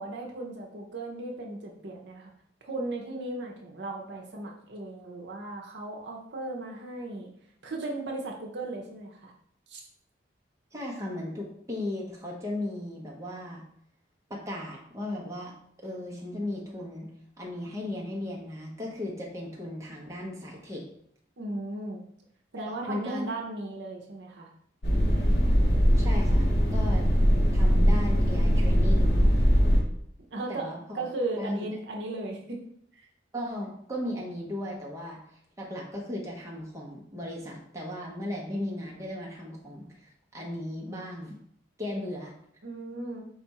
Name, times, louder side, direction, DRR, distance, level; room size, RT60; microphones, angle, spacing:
voice 1, 0.0-2.3 2.6-7.3 7.6-9.3 9.7-9.8 21.4-22.0 22.5-24.5 30.3-32.6 32.9-33.1 42.6-43.2, right 2 dB, 70° right, 0 dB, 0.7 m, -36 dB
voice 2, 10.7-13.6 14.3-15.5 15.8-17.1 17.4-20.8 22.6-23.3 25.9-27.1 27.5-29.1 30.5-31.0 31.4-31.7 33.3-35.2 35.6-41.4 41.8-42.3, left 1 dB, 15° right, -3 dB, 0.8 m, -36 dB
sound 1, 24.8-29.8, equal, 60° left, 0.9 m, -21 dB
4.6 x 2.4 x 4.1 m, 0.67 s
head